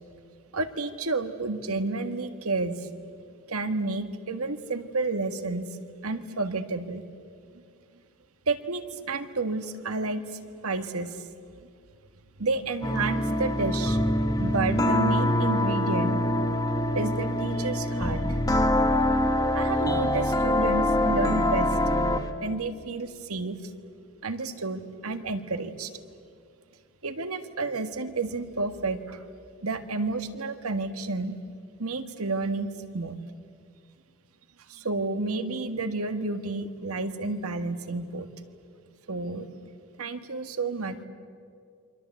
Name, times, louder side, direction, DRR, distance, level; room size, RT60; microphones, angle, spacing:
voice 1, 0.5-2.9 3.5-5.7 6.0-7.0 8.5-11.3 12.4-14.0 14.4-16.2 16.9-18.4 19.5-21.8 22.4-23.7 24.2-26.0 27.0-29.2 29.6-31.4 31.8-33.2 34.7-38.3 39.1-39.7 40.0-41.1, right 3 dB, 85° right, 9 dB, 1.7 m, -30 dB
sound 1, 12.8-22.3, left 1 dB, 15° left, 1.2 m, -24 dB
28.5 x 25.0 x 8.3 m, 2.3 s
head